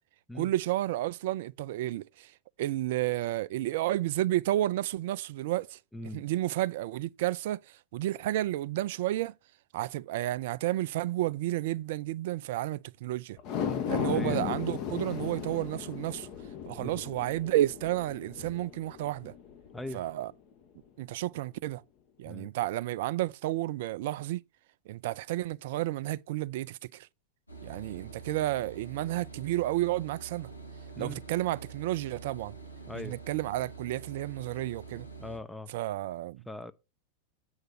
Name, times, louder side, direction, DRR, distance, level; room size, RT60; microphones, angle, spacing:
voice 1, 0.3-2.3 2.6-5.8 6.1-7.6 7.9-9.3 9.7-13.4 13.9-16.3 16.7-19.3 19.9-20.3 21.0-21.8 22.2-24.4 24.9-27.1 27.6-30.5 31.0-32.6 32.9-35.1 35.7-36.4, right 15 dB, 50° right, 0.3 m, -31 dB
voice 2, 5.9-6.3 13.6-14.4 16.8-17.0 19.7-20.0 22.3-22.5 31.0-31.2 32.9-33.2 35.2-35.7 36.5-36.7, left 2 dB, 5° left, 0.7 m, -40 dB
dive mixdown, 13.4-19.9 20.3-20.4, left 8 dB, 40° left, 1.2 m, -36 dB
sound 1, 27.5-35.4, right 4 dB, 85° left, 1.3 m, -46 dB
7.9 x 4.5 x 5.8 m
figure-of-eight pair, 90°, 0 cm